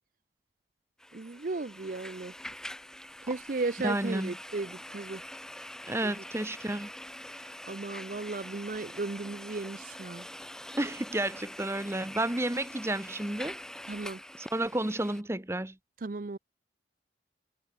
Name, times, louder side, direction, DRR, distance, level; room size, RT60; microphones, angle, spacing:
sound 1, 1.0-15.2, left 1 dB, 5° left, 6.6 m, -45 dB
voice 1, 1.1-2.3 3.2-5.2 6.0-6.2 7.3-10.3 13.9-14.2 16.0-16.4, right 3 dB, 45° right, 0.5 m, -36 dB
voice 2, 3.8-4.3 5.9-6.9 10.8-13.6 14.4-15.7, right 1 dB, 15° right, 1.0 m, -31 dB
head